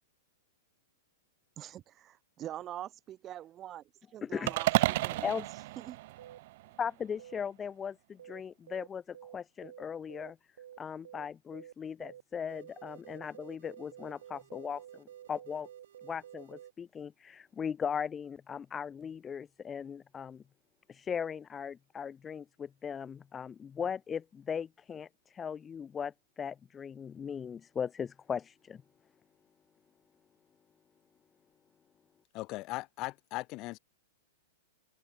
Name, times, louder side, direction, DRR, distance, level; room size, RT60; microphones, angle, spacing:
voice 1, 1.6-3.8 4.1-5.3 5.8-6.0, right 12 dB, 25° right, 1.6 m, -44 dB
voice 2, 4.2-4.5 5.2-5.5 6.8-10.4 10.8-15.7 16.0-20.4 20.9-28.8, left 7 dB, 15° left, 0.3 m, -38 dB
sound 1, 4.5-6.8, right 18 dB, 55° right, 0.4 m, -31 dB
sound 2, 5.2-5.4 6.2-6.4 7.2-7.4 8.2-8.4 8.7-8.9 9.1-9.4 9.6-9.8 10.1-10.3 10.6-10.8 11.1-11.3 11.5-11.7 12.0-12.2 12.5-16.7, right 10 dB, 75° right, 0.9 m, -51 dB
voice 3, 32.3-33.8, left 20 dB, 35° left, 1.6 m, -38 dB
hypercardioid pair, 145°, 0 cm